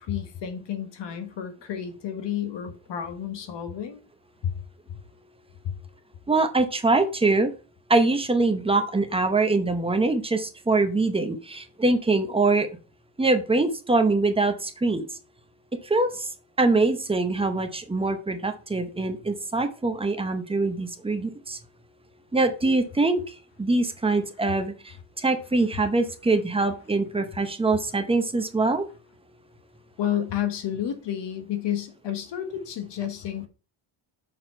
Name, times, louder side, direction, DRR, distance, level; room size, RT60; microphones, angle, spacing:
voice 1, 0.0-4.0 4.4-4.5 4.9-5.0 5.6-5.7 30.0-33.5, left 10 dB, 55° left, 1.4 m, -31 dB
voice 2, 6.3-7.5 7.9-12.7 13.2-15.1 15.9-16.3 16.6-21.6 22.3-23.2 23.6-24.7 25.2-28.8, right 3 dB, 10° right, 0.7 m, -23 dB
6.8 x 4.3 x 4.4 m
cardioid pair, 155°, 50 cm